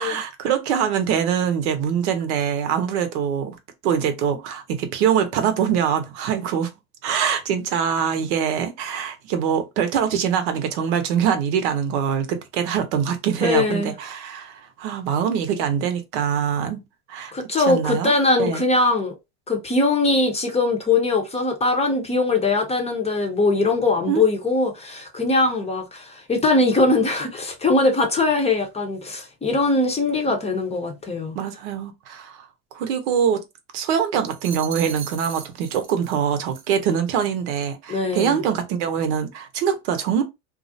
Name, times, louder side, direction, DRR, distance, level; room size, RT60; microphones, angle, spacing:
voice 1, 0.0-3.6 3.8-6.7 7.0-16.8 17.1-17.3 17.7-18.1 18.4-18.6 24.1-24.2 31.3-32.5 32.7-33.4 33.7-40.2, right 8 dB, 70° right, 0.7 m, -23 dB
voice 2, 13.4-13.9 17.3-19.1 19.5-31.4 37.9-38.4, left 3 dB, 20° left, 0.6 m, -21 dB
sound 1, 34.3-36.2 36.5-36.8, right 7 dB, 35° right, 0.6 m, -37 dB
2.4 x 2.0 x 2.6 m
hypercardioid pair, 95°, 35 cm